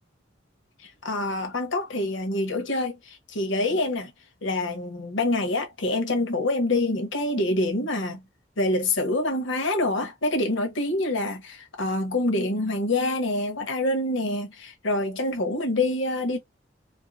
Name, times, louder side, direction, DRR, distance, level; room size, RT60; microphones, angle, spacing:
voice 1, 0.8-4.1 4.4-8.2 8.6-16.4, left 2 dB, 85° left, 1.1 m, -26 dB
4.4 x 2.1 x 2.6 m
head